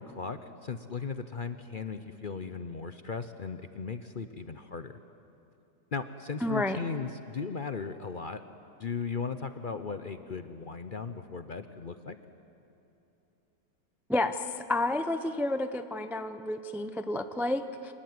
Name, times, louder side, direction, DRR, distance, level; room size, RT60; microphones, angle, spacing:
voice 1, 0.0-5.0 5.9-8.4 8.8-12.2, left 5 dB, 50° left, 9 dB, 0.6 m, -37 dB
voice 2, 6.4-6.8 14.1-14.4 14.7-17.9, left 2 dB, 5° right, 9 dB, 0.3 m, -30 dB
26.5 x 19.0 x 9.5 m, 2.8 s
omnidirectional pair, 1.8 m